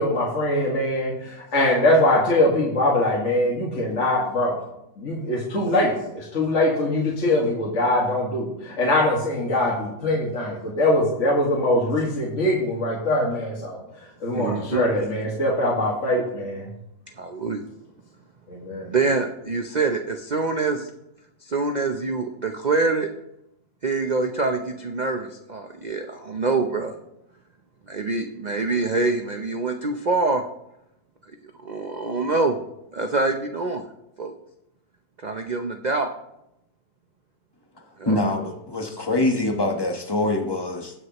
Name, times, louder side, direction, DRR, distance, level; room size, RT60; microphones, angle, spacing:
voice 1, 0.0-4.6 5.0-13.8 14.2-16.7 18.5-18.9, left 1 dB, 45° left, -4 dB, 2.1 m, -22 dB
voice 2, 14.3-14.8 17.2-17.6 18.9-20.9 21.4-23.1 23.8-26.9 27.9-30.4 31.4-32.6 32.9-33.8 34.2-34.4 35.2-36.1 38.0-38.2, right 3 dB, 75° right, 5 dB, 0.4 m, -25 dB
voice 3, 38.0-40.9, left 2 dB, 15° left, 3 dB, 1.0 m, -24 dB
18.5 x 6.4 x 3.0 m, 0.83 s
omnidirectional pair, 1.7 m